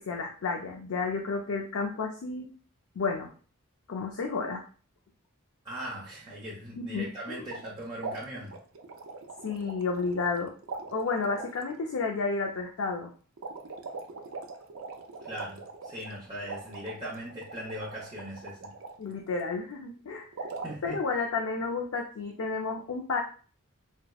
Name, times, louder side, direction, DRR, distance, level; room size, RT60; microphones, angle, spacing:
voice 1, 0.0-2.5 3.0-3.3 3.9-4.6 6.8-7.4 9.4-10.5 10.9-13.1 19.0-20.3 20.8-23.2, left 4 dB, 70° left, 1 dB, 0.4 m, -31 dB
voice 2, 5.6-8.6 15.2-18.7 20.6-21.0, right 1 dB, 25° right, -6 dB, 0.7 m, -39 dB
sound 1, 7.4-7.7 8.0-10.4 10.6-11.6 13.4-18.9 20.3-20.7, right 3 dB, 70° right, 0.5 m, -41 dB
4.2 x 2.0 x 2.3 m, 0.39 s
head